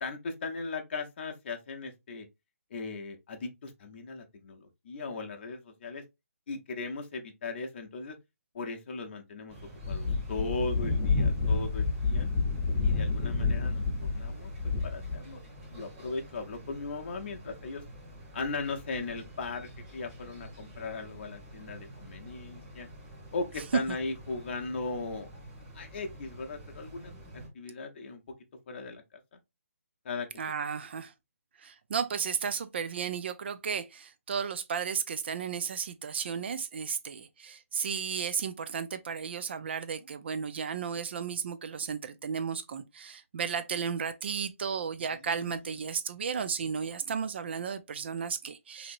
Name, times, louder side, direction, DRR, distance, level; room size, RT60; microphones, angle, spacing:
voice 1, 0.0-2.3 2.7-6.0 6.5-8.2 8.5-9.6 9.9-12.3 12.8-14.5 14.8-15.4 15.7-17.8 18.3-22.9 23.3-25.3 25.7-28.2 28.7-29.0 29.3-29.4 30.0-30.3 45.1-45.7, left 3 dB, 45° left, 0.7 m, -38 dB
sound 1, 9.5-27.5, right 1 dB, 15° right, 1.1 m, -48 dB
sound 2, 9.8-15.2, left 4 dB, 15° left, 0.8 m, -29 dB
voice 2, 30.4-31.1 31.6-48.9, right 6 dB, 45° right, 0.4 m, -34 dB
2.9 x 2.8 x 2.6 m
hypercardioid pair, 155°, 8 cm